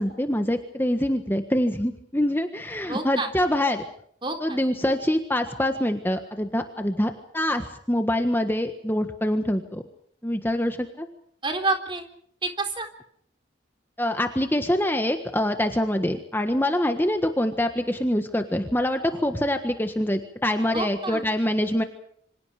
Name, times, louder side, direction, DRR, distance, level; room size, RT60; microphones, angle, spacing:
voice 1, 0.0-3.8 4.4-9.8 10.2-11.1 14.0-21.8, left 1 dB, 10° left, 6 dB, 1.5 m, -25 dB
voice 2, 2.9-3.3 4.2-4.6 11.4-12.0 12.4-12.9 20.7-21.2, right 3 dB, 25° right, 5 dB, 3.7 m, -28 dB
27.5 x 26.0 x 5.0 m, 0.65 s
head